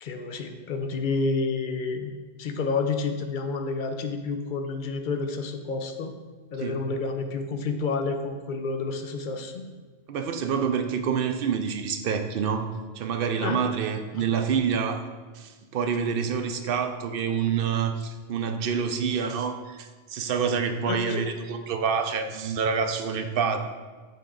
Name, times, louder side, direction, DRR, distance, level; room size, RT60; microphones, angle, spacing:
voice 1, 0.0-2.1 2.4-6.1 6.5-9.6 13.4-13.6 14.1-14.3 20.9-21.2, left 4 dB, 55° left, 6 dB, 0.7 m, -29 dB
voice 2, 10.1-12.7 13.0-15.0 15.3-23.6, right 6 dB, 65° right, 7 dB, 0.7 m, -27 dB
6.7 x 4.7 x 3.8 m, 1.4 s
omnidirectional pair, 1.1 m